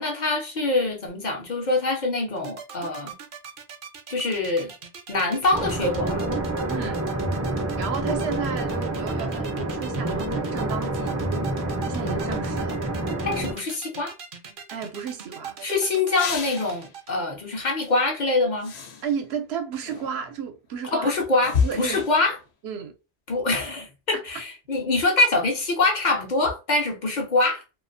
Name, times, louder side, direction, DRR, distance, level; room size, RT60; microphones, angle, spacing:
voice 1, 0.0-3.1 4.1-4.7 5.1-6.2 13.2-14.1 15.6-18.7 20.9-22.4 23.3-27.6, left 3 dB, 55° left, 0.6 m, -24 dB
sound 1, 2.4-17.1, right 6 dB, 60° right, 0.7 m, -39 dB
sound 2, 5.5-13.5, right 1 dB, 25° right, 0.4 m, -28 dB
voice 2, 6.7-7.0 7.8-11.2 11.8-12.8 14.7-15.6 19.0-21.1 21.6-22.0 22.6-22.9, right 7 dB, 85° right, 0.8 m, -32 dB
sound 3, 16.1-17.0 17.9-18.0 18.6-19.3 19.9-20.4 21.4-22.5 23.6-23.7, left 5 dB, 85° left, 0.9 m, -38 dB
2.4 x 2.3 x 2.5 m
omnidirectional pair, 1.1 m